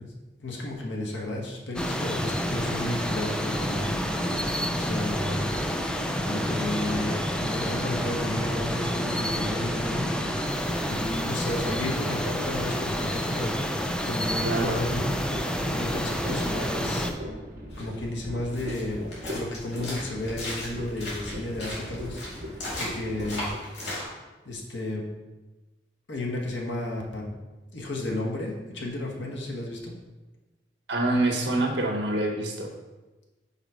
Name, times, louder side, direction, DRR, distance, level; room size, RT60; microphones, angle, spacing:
voice 1, 0.4-4.0 4.4-5.6 6.2-10.2 10.6-13.5 14.0-15.1 15.6-17.1 17.8-19.0 19.3-22.2 22.5-23.5 24.4-25.1 26.1-27.3 27.7-29.9, left 1 dB, 85° left, -1 dB, 1.4 m, -33 dB
sound 1, 1.8-17.1, equal, 5° left, 0.4 m, -29 dB
voice 2, 14.4-14.8 30.9-32.7, right 2 dB, 75° right, 1 dB, 1.2 m, -26 dB
sound 2, 14.5-23.6, equal, 50° right, 1.6 m, -38 dB
sound 3, 17.7-24.0, left 1 dB, 70° left, 2.4 m, -37 dB
5.6 x 4.9 x 4.9 m, 1.2 s
head